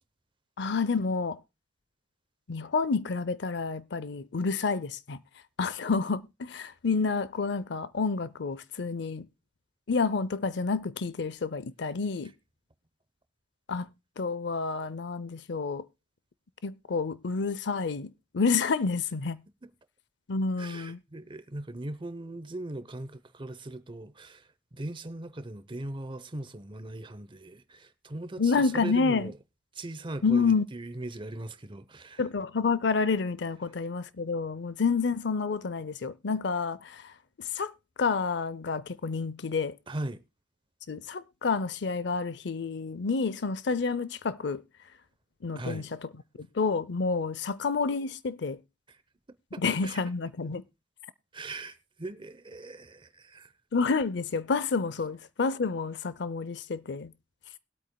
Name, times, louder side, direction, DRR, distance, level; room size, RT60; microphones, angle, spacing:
voice 1, 0.6-1.4 2.5-5.2 5.6-9.3 9.9-12.3 13.7-13.9 14.2-15.8 16.6-19.4 20.3-21.0 28.4-29.3 30.2-30.7 32.2-37.1 37.4-37.7 38.0-39.8 40.9-44.6 45.4-45.8 46.4-48.6 49.6-50.6 53.7-57.1, left 4 dB, 70° left, 0.6 m, -29 dB
voice 2, 20.6-29.4 29.7-32.2 39.9-40.2 45.5-45.9 48.9-49.0 49.5-50.0 51.3-53.5, right 2 dB, 30° right, 0.8 m, -40 dB
21.5 x 8.5 x 2.2 m
head